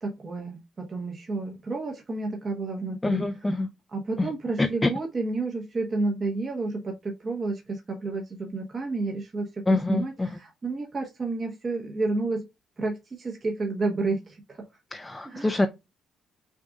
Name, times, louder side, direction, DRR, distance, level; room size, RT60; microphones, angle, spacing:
voice 1, 0.0-3.2 3.6-3.7 3.9-12.5 12.8-14.6 15.2-15.6, right 3 dB, 35° right, 1.2 m, -31 dB
voice 2, 3.0-3.7 4.2-4.3 4.6-4.9 9.7-10.3 14.9-15.7, left 2 dB, 15° left, 0.5 m, -25 dB
6.5 x 2.5 x 2.4 m
cardioid pair, 90°, 0 cm